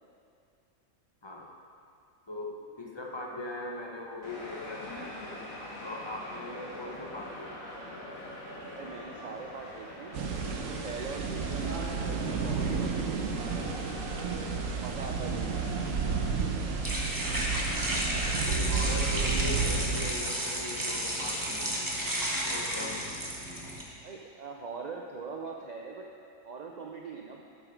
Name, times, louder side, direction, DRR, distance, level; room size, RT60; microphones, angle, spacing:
voice 1, 1.2-1.6 2.3-5.2 5.8-7.7 15.8-15.9 18.4-21.7 22.4-23.2, left 2 dB, 25° left, 0 dB, 0.7 m, -40 dB
sound 1, 4.2-19.8, left 1 dB, 80° left, 2.1 m, -44 dB
voice 2, 8.7-10.2 10.5-11.9 12.2-14.0 14.7-15.8 24.0-26.1 26.4-27.4, right 4 dB, 55° right, 1 dB, 0.4 m, -41 dB
sound 2, 10.1-20.1, right 5 dB, 75° right, 1.1 m, -32 dB
sound 3, 15.2-23.8, right 1 dB, 15° right, 1.0 m, -33 dB
8.2 x 7.8 x 5.2 m, 2.5 s
omnidirectional pair, 1.4 m